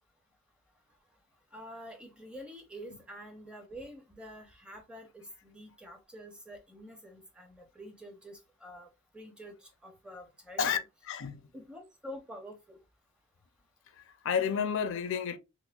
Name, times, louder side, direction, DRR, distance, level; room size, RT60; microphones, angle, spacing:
voice 1, 1.5-10.8 11.5-12.8, equal, 5° right, 0.7 m, -47 dB
voice 2, 11.0-11.4 14.0-15.4, left 7 dB, 60° left, 0.4 m, -31 dB
5.9 x 2.0 x 2.3 m
head